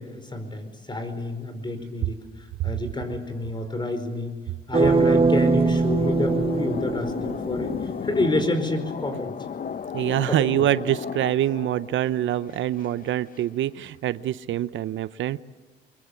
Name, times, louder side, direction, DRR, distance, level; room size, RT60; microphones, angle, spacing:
voice 1, 0.0-4.3 4.7-7.7 8.0-9.3 10.3-10.5, left 1 dB, 20° left, 9 dB, 4.9 m, -28 dB
sound 1, 4.7-7.8, right 4 dB, 30° right, 1.3 m, -22 dB
sound 2, 5.3-13.4, left 7 dB, 45° left, 1.0 m, -34 dB
voice 2, 9.9-15.4, right 12 dB, 75° right, 16 dB, 0.7 m, -25 dB
23.5 x 22.0 x 8.5 m, 1.3 s
cardioid pair, 90°, 20 cm